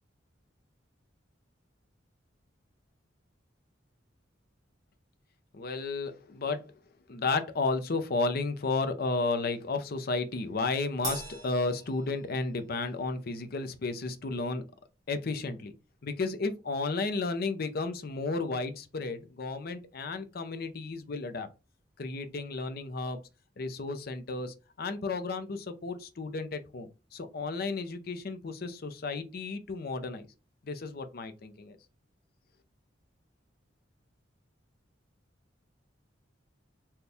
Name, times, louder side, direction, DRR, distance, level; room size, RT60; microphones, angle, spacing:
voice 1, 5.5-6.8 7.1-14.6 15.1-15.7 16.0-21.5 22.0-23.2 23.6-30.3 30.6-31.8, left 3 dB, 55° left, 0.6 m, -33 dB
Crash cymbal, 11.0-12.7, right 3 dB, 20° right, 1.2 m, -40 dB
4.3 x 2.3 x 3.4 m
head